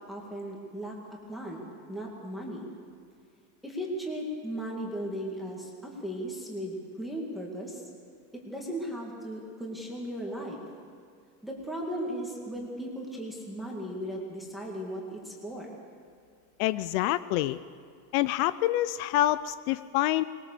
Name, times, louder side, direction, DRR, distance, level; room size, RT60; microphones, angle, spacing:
voice 1, 0.1-2.7 3.6-7.8 8.3-10.6 11.4-15.8, equal, ahead, -2 dB, 2.1 m, -37 dB
voice 2, 16.6-17.6 18.1-20.2, left 15 dB, 65° left, 15 dB, 0.6 m, -26 dB
21.0 x 20.5 x 6.8 m, 2.2 s
cardioid pair, 170°, 46 cm